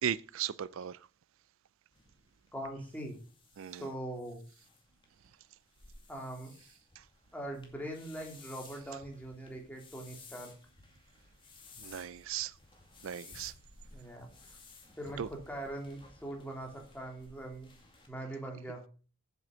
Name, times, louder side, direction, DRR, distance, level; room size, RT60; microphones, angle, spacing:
voice 1, 0.0-1.0 3.6-3.9 7.0-7.1 11.8-12.5 13.0-13.5 15.2-15.3, right 9 dB, 65° right, 0.4 m, -36 dB
sound 1, 1.9-18.1, left 3 dB, 25° left, 2.2 m, -57 dB
voice 2, 2.5-3.1 3.8-4.4 6.1-6.5 7.3-10.5 13.9-14.3 15.0-17.7 18.1-18.8, right 1 dB, 5° left, 2.7 m, -41 dB
7.8 x 7.5 x 6.2 m
head